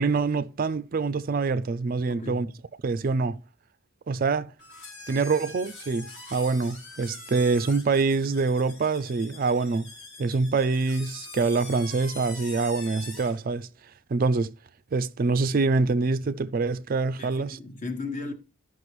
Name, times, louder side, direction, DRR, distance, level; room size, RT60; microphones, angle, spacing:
voice 1, 0.0-2.5 2.8-3.4 4.1-4.5 5.1-9.9 10.2-13.7 14.1-14.5 14.9-17.6, right 4 dB, 45° right, 0.4 m, -25 dB
voice 2, 2.1-2.5 17.2-18.3, left 3 dB, 35° left, 1.1 m, -35 dB
sound 1, 4.6-13.4, left 2 dB, 85° left, 3.8 m, -44 dB
13.5 x 5.8 x 3.1 m
head